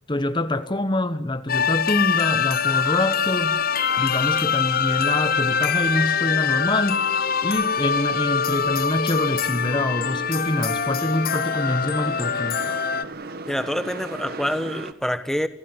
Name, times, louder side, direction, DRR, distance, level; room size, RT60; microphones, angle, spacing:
voice 1, 0.1-3.6 4.0-7.0 7.4-12.6, left 1 dB, 25° left, 1.2 m, -25 dB
sound 1, 1.5-13.0, left 6 dB, 50° left, 1.0 m, -24 dB
sound 2, 2.3-14.9, right 3 dB, 50° right, 1.6 m, -40 dB
voice 2, 13.5-15.5, equal, ahead, 1.2 m, -26 dB
28.5 x 16.0 x 9.7 m
head